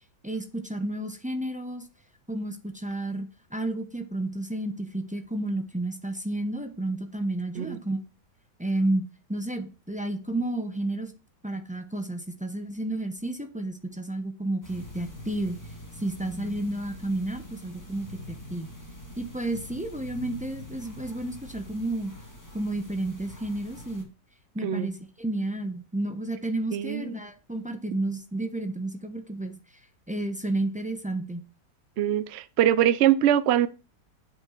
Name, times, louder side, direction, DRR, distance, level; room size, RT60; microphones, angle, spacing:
voice 1, 0.2-1.8 2.3-8.0 8.6-11.1 11.4-15.6 16.0-18.7 19.2-22.1 22.5-24.1 24.5-29.5 30.1-31.4, right 1 dB, 10° right, 0.4 m, -31 dB
sound 1, 14.6-24.0, left 1 dB, 10° left, 2.1 m, -44 dB
voice 2, 26.7-27.2 32.0-33.7, right 11 dB, 65° right, 0.6 m, -23 dB
8.0 x 5.3 x 5.7 m
omnidirectional pair, 1.9 m